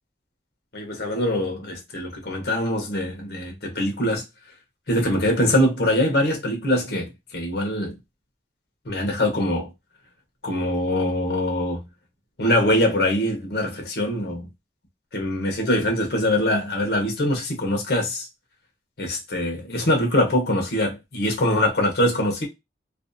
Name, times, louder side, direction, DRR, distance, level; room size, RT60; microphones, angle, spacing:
voice 1, 0.7-4.2 4.9-8.0 8.9-9.7 10.4-11.8 12.4-14.5 15.1-18.3 19.0-22.5, left 1 dB, 65° left, 0.7 m, -23 dB
2.6 x 2.2 x 2.5 m
head